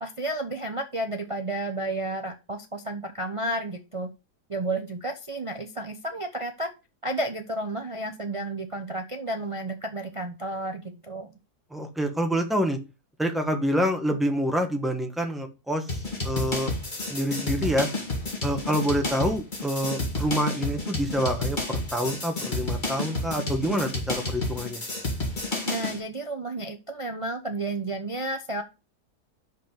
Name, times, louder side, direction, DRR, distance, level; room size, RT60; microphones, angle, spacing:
voice 1, 0.0-4.1 4.5-6.7 7.0-11.3 25.7-28.6, right 1 dB, 40° right, 5 dB, 0.4 m, -32 dB
voice 2, 11.7-12.8 13.2-15.8 16.2-16.7 17.1-17.9 18.4-24.8, equal, ahead, 4 dB, 1.1 m, -27 dB
sound 1, 15.9-26.0, left 2 dB, 30° left, 2.2 m, -30 dB
5.8 x 5.4 x 5.3 m, 0.28 s
omnidirectional pair, 1.7 m